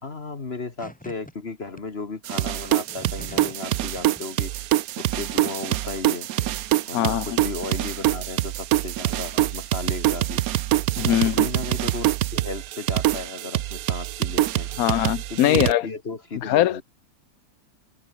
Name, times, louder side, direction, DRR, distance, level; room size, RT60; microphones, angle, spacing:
voice 1, 0.0-4.5 5.0-6.3 6.9-10.4 11.0-14.7 15.3-16.8, left 3 dB, 45° left, 2.0 m, -35 dB
sound 1, 0.8-1.3 1.7-1.8 2.7-3.7 4.0-4.2, equal, 5° left, 3.9 m, -44 dB
sound 2, 2.2-15.7, right 14 dB, 80° right, 1.1 m, -25 dB
voice 2, 6.9-7.4 11.0-11.5 14.8-15.9 16.4-16.8, left 13 dB, 80° left, 1.2 m, -22 dB
omnidirectional pair, 1.5 m